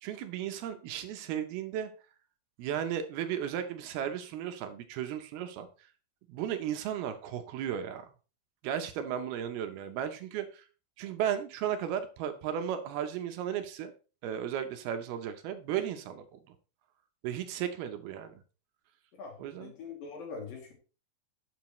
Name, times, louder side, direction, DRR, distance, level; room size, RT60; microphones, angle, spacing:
voice 1, 0.0-1.9 2.6-5.7 6.3-8.1 8.6-10.6 11.0-13.9 14.2-16.4 17.2-18.3 19.4-19.7, right 9 dB, 75° right, 8 dB, 2.7 m, -35 dB
voice 2, 19.1-20.7, left 4 dB, 60° left, 1 dB, 4.0 m, -43 dB
12.0 x 8.3 x 3.1 m, 0.35 s
omnidirectional pair, 4.8 m